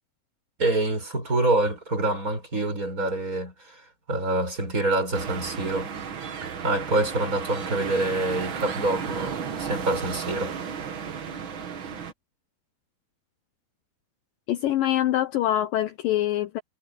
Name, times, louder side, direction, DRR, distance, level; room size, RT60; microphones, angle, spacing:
voice 1, 0.6-3.8 4.1-5.9 6.4-10.6, right 2 dB, 20° right, 6.6 m, -26 dB
sound 1, 5.1-12.1, right 6 dB, 55° right, 1.4 m, -34 dB
voice 2, 14.5-16.6, left 12 dB, 70° left, 2.4 m, -24 dB
omnidirectional pair, 4.5 m